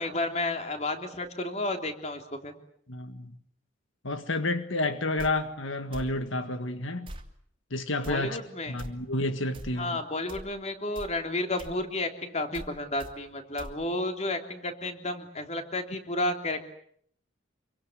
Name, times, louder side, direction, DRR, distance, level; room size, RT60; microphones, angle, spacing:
voice 1, 0.0-2.5 8.1-8.8 9.8-16.6, left 2 dB, 35° left, 3.2 m, -32 dB
voice 2, 2.9-3.3 4.0-7.1 7.7-8.4 8.7-10.0, left 2 dB, 80° left, 1.8 m, -30 dB
sound 1, 5.2-5.3 5.9-6.1 7.0-7.3 8.0-8.2 8.8-8.9 9.5-9.7 10.3-10.5 10.9-11.1 11.6-11.8 12.5-12.7 13.0-13.1 13.6-13.7, right 1 dB, 25° right, 2.6 m, -41 dB
26.5 x 24.0 x 8.0 m
head